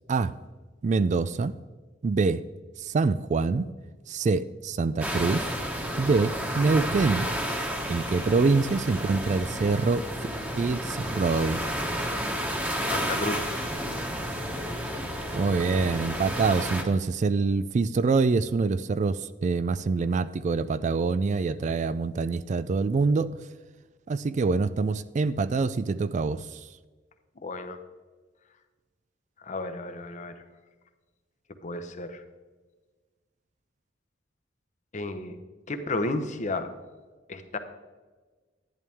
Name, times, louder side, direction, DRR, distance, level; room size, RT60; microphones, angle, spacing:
voice 1, 0.8-1.5 2.0-2.4 2.8-3.7 4.1-5.5 6.0-7.3 7.9-10.1 10.6-11.6 15.3-23.3 24.1-26.6, right 4 dB, 40° right, 15 dB, 0.3 m, -25 dB
sound 1, 5.0-16.8, equal, 10° right, 1.3 m, -31 dB
voice 2, 12.8-13.7 27.4-27.8 29.4-30.3 31.6-32.2 34.9-35.4 35.7-36.7 37.3-37.6, left 2 dB, 40° left, 9 dB, 0.9 m, -32 dB
11.5 x 11.0 x 3.5 m, 1.3 s
head